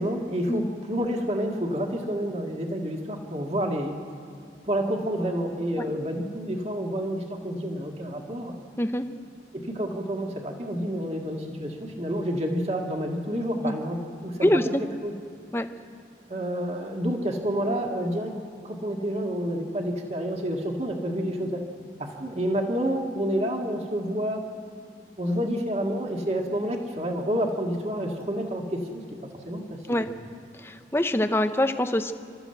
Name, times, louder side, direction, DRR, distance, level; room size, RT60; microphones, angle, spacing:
voice 1, 0.0-4.0 4.6-8.5 9.5-14.7 15.0-15.1 16.3-18.3 18.6-21.6 22.0-24.4 25.2-29.0 29.5-30.1, equal, 35° right, 1 dB, 2.0 m, -29 dB
voice 2, 14.4-14.8 15.5-15.7 29.9-30.1 30.6-32.1, left 1 dB, 15° left, 8 dB, 0.8 m, -24 dB
29.0 x 13.5 x 7.9 m, 2.3 s
head